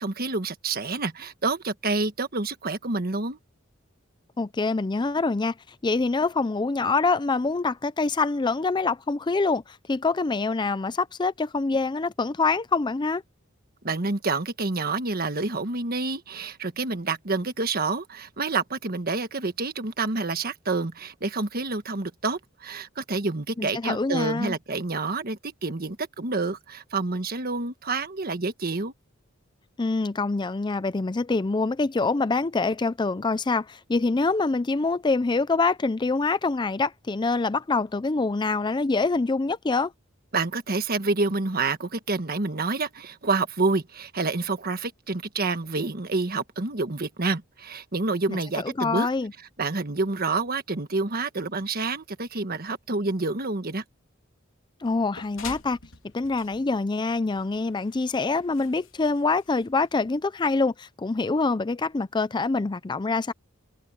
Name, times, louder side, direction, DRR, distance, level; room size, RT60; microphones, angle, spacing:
voice 1, 0.0-3.4 13.8-28.9 40.3-49.1 49.6-53.8, right 3 dB, 50° right, 1.5 m, -28 dB
voice 2, 4.4-5.5 5.8-13.2 23.6-24.6 29.8-39.9 48.3-49.3 54.8-55.8 56.1-63.3, left 3 dB, 20° left, 0.4 m, -25 dB
sound 1, 54.8-60.2, left 6 dB, 85° left, 3.3 m, -46 dB
head